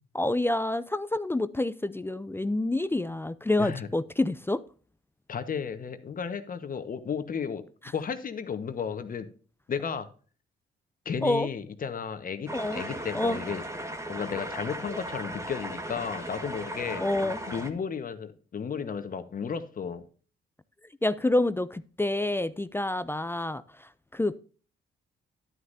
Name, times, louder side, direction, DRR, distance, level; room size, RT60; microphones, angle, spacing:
voice 1, 0.1-4.6 11.2-11.5 12.5-12.8 13.1-13.4 17.0-17.4 21.0-24.4, left 2 dB, 10° left, 15 dB, 0.5 m, -28 dB
voice 2, 5.3-7.6 7.9-9.3 9.7-10.1 11.0-13.6 14.1-20.0, left 6 dB, 45° left, 10 dB, 1.4 m, -34 dB
sound 1, 12.5-17.7, right 1 dB, 15° right, 1.6 m, -37 dB
11.0 x 9.7 x 2.7 m, 0.39 s
cardioid pair, 90°, 20 cm